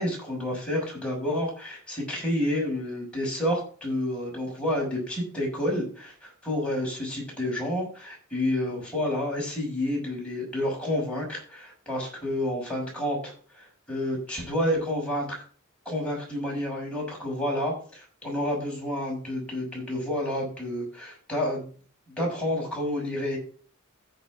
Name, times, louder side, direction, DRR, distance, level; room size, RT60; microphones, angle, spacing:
voice 1, 0.0-15.4 15.8-21.7 22.1-23.4, left 1 dB, 5° left, -4 dB, 6.2 m, -29 dB
15.5 x 7.0 x 3.7 m, 0.42 s
head